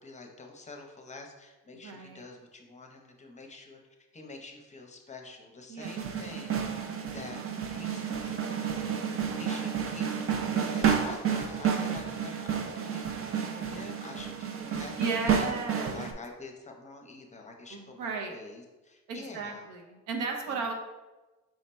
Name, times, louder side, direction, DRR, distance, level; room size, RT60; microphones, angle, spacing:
voice 1, 0.0-6.6 7.1-7.4 7.7-15.5 15.7-19.7 20.5-20.7, left 3 dB, 25° left, 2 dB, 0.6 m, -47 dB
voice 2, 1.8-2.2 5.7-5.9 9.3-9.5 14.9-16.0 17.7-18.4 19.1-20.7, right 4 dB, 85° right, 3 dB, 0.7 m, -35 dB
sound 1, 5.8-16.1, right 7 dB, 45° right, 0.6 m, -31 dB
4.8 x 2.1 x 4.2 m, 1.1 s
cardioid pair, 85°, 30 cm